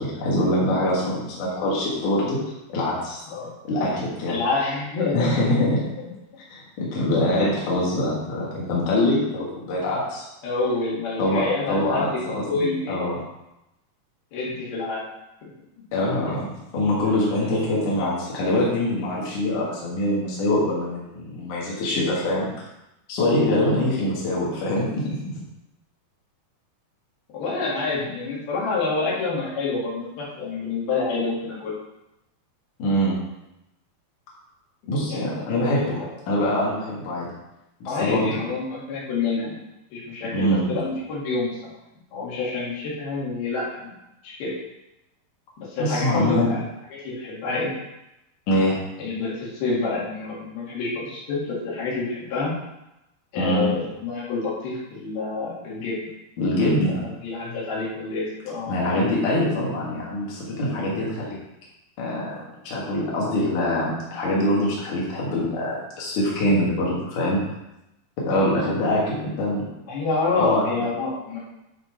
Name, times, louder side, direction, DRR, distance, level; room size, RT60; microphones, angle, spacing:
voice 1, 0.0-2.4 2.7-3.2 3.7-4.4 5.1-5.8 6.5-10.2 11.2-13.2 15.9-22.5 23.1-25.3 32.8-33.2 34.9-37.3 37.8-38.3 40.3-40.6 45.8-46.5 48.5-48.8 53.4-53.6 56.4-57.0 58.7-61.4 62.0-62.4 62.6-67.4 68.2-69.7 70.3-70.7, left 1 dB, 55° left, -6 dB, 3.4 m, -24 dB
voice 2, 4.3-5.7 6.0-6.1 7.4-7.6 10.4-13.1 14.3-15.0 17.0-17.3 27.3-31.7 35.1-35.9 37.9-39.6 39.9-41.6 42.1-43.9 44.2-44.5 45.7-46.6 47.0-47.7 49.0-52.5 53.3-56.0 57.2-58.8 69.9-71.4, left 3 dB, 75° left, -6 dB, 4.2 m, -27 dB
11.0 x 4.4 x 5.9 m, 0.92 s
omnidirectional pair, 4.5 m